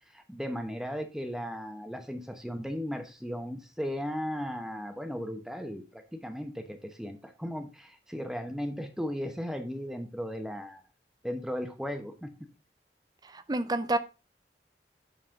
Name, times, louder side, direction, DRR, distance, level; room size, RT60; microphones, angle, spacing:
voice 1, 0.1-10.8 11.2-12.3, equal, 5° right, 0.9 m, -36 dB
voice 2, 13.3-14.0, right 2 dB, 20° right, 0.5 m, -29 dB
9.2 x 4.2 x 5.1 m
head